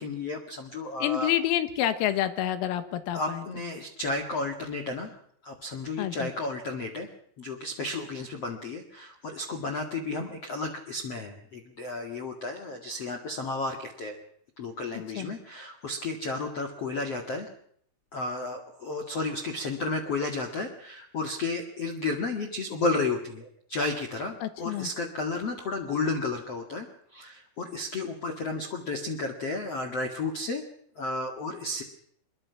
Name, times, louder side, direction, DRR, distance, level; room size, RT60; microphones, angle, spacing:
voice 1, 0.0-1.3 3.1-5.1 5.4-7.1 7.4-14.2 14.6-17.5 18.1-30.6 31.0-31.8, left 3 dB, 50° left, 4 dB, 1.9 m, -32 dB
voice 2, 1.0-3.5 6.0-6.3 15.2-15.3 24.4-24.9, left 12 dB, 85° left, 11 dB, 4.1 m, -28 dB
24.5 x 22.5 x 5.9 m, 0.64 s
omnidirectional pair, 6.0 m